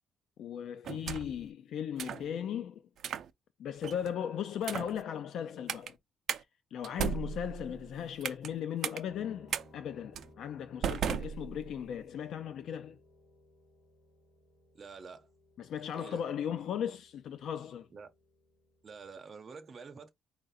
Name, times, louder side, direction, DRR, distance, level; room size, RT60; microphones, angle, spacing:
voice 1, 0.4-2.8 3.6-6.0 6.7-13.0 15.6-17.9, left 9 dB, 60° left, 0.3 m, -37 dB
sound 1, 0.8-1.4 2.0-2.3 3.0-3.3 3.8-4.1 4.6-5.0 5.7-5.9 6.3-6.4 6.8-8.5 8.8-9.0 9.5-9.6 10.2-10.3 10.8-11.9, right 8 dB, 55° right, 0.5 m, -36 dB
Piano, 9.1-19.2, left 1 dB, 20° left, 1.7 m, -61 dB
voice 2, 14.7-15.3 15.6-16.3 17.9-18.1 18.8-20.1, right 5 dB, 30° right, 0.9 m, -48 dB
4.7 x 2.6 x 4.0 m
cardioid pair, 150°, 0 cm